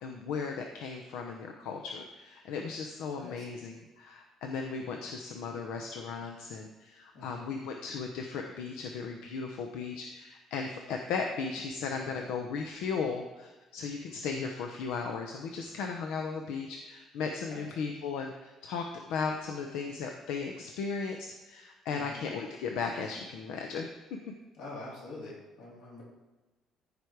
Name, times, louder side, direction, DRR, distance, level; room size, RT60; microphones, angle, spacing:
voice 1, 0.0-21.2 21.4-23.9, left 5 dB, 85° left, 3 dB, 0.9 m, -36 dB
voice 2, 3.1-3.4 7.1-7.5 12.1-12.3 17.5-17.7 21.9-22.2 24.6-26.0, left 2 dB, 65° left, -4 dB, 3.6 m, -45 dB
14.0 x 5.1 x 4.7 m, 1.2 s
cardioid pair, 175°, 0 cm